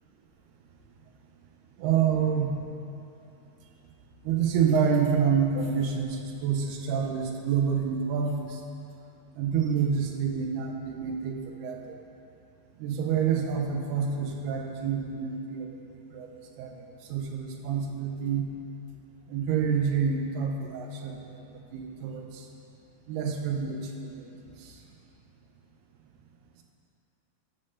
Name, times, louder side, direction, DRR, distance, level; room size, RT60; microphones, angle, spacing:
voice 1, 1.8-2.6 4.2-8.6 9.4-12.0 12.8-15.8 16.1-16.3 16.6-16.8 17.1-18.5 19.3-21.4 21.7-22.5 23.1-24.3 24.6-24.8, right 7 dB, 85° right, 2 dB, 2.8 m, -28 dB
11.5 x 4.4 x 6.3 m, 2.8 s
omnidirectional pair, 4.5 m